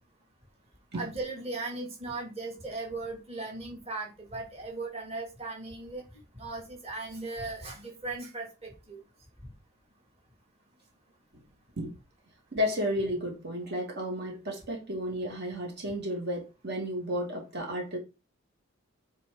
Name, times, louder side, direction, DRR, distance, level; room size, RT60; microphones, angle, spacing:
voice 1, 0.9-6.0 6.4-9.0, right 3 dB, 30° right, 2.5 m, -37 dB
voice 2, 12.5-18.0, equal, 50° right, 2.3 m, -32 dB
9.2 x 4.3 x 3.8 m
head